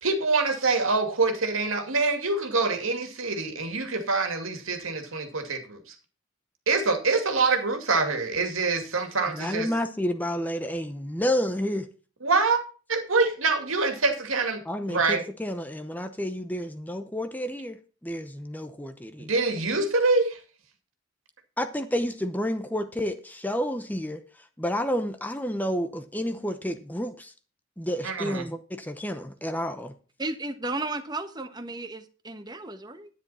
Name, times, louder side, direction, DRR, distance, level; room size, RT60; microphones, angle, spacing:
voice 1, 0.0-6.0 6.7-9.7 12.2-12.6 12.9-15.2 19.2-20.4 28.0-28.5, right 3 dB, 90° right, 2.4 m, -25 dB
voice 2, 9.3-11.9 14.7-17.8 18.0-19.3 21.6-24.2 24.6-27.3 27.8-29.9, equal, 10° left, 0.8 m, -30 dB
voice 3, 30.2-33.1, right 2 dB, 20° right, 1.2 m, -34 dB
10.5 x 9.9 x 4.3 m
head